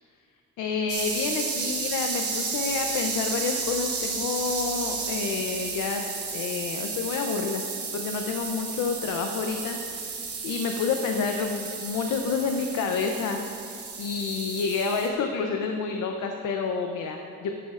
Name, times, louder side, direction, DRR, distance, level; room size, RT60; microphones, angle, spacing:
voice 1, 0.6-6.0 6.3-7.6 7.9-10.2 10.4-17.5, left 5 dB, 80° left, 4 dB, 0.7 m, -29 dB
sound 1, 0.9-15.1, right 4 dB, 55° right, 2.0 m, -33 dB
13.5 x 10.5 x 2.5 m, 2.4 s
cardioid pair, 90°, 30 cm